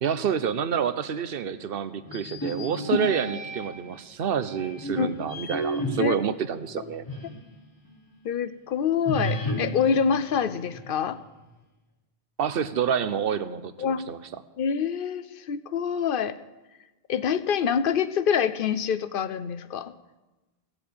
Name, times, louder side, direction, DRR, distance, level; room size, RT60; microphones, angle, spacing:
voice 1, 0.0-7.0 12.4-14.2, right 8 dB, 65° right, 13 dB, 1.0 m, -28 dB
sound 1, 2.1-3.9 4.5-7.5 7.9-8.0 9.1-11.1, equal, 20° left, 1.5 m, -33 dB
voice 2, 8.2-11.2 13.8-14.0 14.6-16.4 17.1-19.9, left 7 dB, 60° left, 14 dB, 0.8 m, -26 dB
16.0 x 7.0 x 8.5 m, 1.1 s
omnidirectional pair, 1.1 m